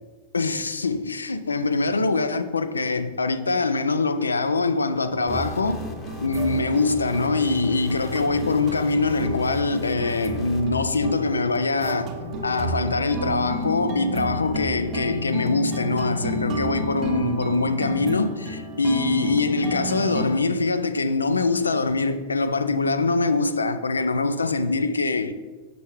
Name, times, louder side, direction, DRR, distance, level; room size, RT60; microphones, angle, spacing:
voice 1, 0.3-5.8 6.2-12.1 12.4-25.3, left 3 dB, 75° left, 0.4 m, -23 dB
sound 1, 5.1-20.3, right 1 dB, 35° right, 1.0 m, -32 dB
sound 2, 5.3-10.6, left 3 dB, 25° left, 0.9 m, -39 dB
6.2 x 5.8 x 3.6 m
figure-of-eight pair, 90°, 0 cm